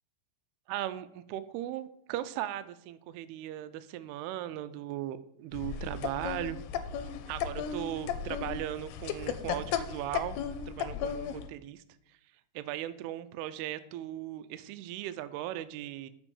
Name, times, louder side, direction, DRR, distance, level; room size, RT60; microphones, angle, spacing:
voice 1, 0.7-6.6 7.3-10.4 10.7-11.8 12.6-16.1, right 13 dB, 80° right, 12 dB, 2.5 m, -38 dB
sound 1, 5.5-11.5, left 8 dB, 80° left, 2.6 m, -35 dB
7.0 x 5.2 x 7.0 m, 0.74 s
omnidirectional pair, 4.7 m